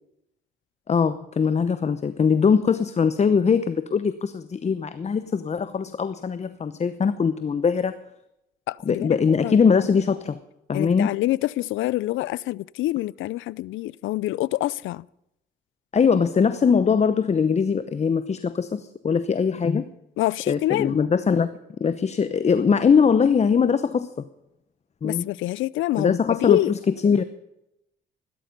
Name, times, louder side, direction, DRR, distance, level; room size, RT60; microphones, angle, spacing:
voice 1, 0.9-7.9 8.9-10.4 10.7-11.1 15.9-19.9 20.5-21.5 21.8-24.1 25.0-25.3 26.0-27.2, left 6 dB, 35° left, 0.8 m, -21 dB
voice 2, 8.7-9.2 9.4-9.6 10.7-15.0 20.2-21.0 25.0-26.7, left 16 dB, 80° left, 0.4 m, -26 dB
16.0 x 12.5 x 5.3 m
cardioid pair, 90°, 20 cm